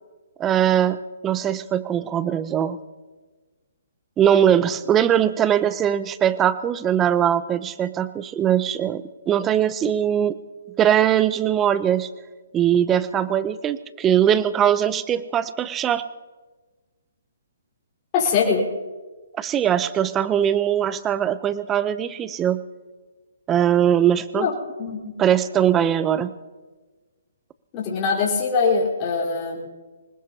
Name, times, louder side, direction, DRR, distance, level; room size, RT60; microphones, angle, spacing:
voice 1, 0.4-2.8 4.2-10.3 10.8-12.1 12.5-16.0 19.4-22.6 23.5-24.5 25.2-26.3, right 10 dB, 15° right, 15 dB, 0.6 m, -21 dB
voice 2, 18.1-18.6 24.3-24.5 24.8-25.1 27.7-29.7, left 5 dB, 30° left, -5 dB, 4.2 m, -22 dB
25.0 x 20.0 x 2.8 m, 1.3 s
hypercardioid pair, 150°, 0 cm